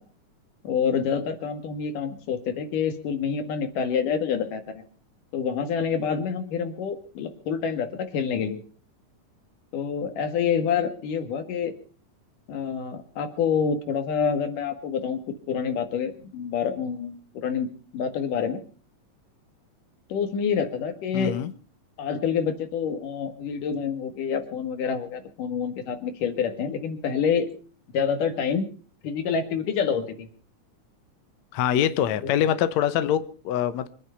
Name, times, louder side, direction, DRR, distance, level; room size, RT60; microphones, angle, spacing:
voice 1, 0.6-4.8 5.3-8.6 9.7-11.7 12.5-18.6 20.1-21.3 22.0-27.5 27.9-28.7 29.0-30.3 32.2-32.5, left 6 dB, 85° left, 3.4 m, -27 dB
voice 2, 21.1-21.5 31.5-33.9, left 10 dB, 70° left, 2.0 m, -24 dB
25.0 x 9.9 x 5.7 m
omnidirectional pair, 3.6 m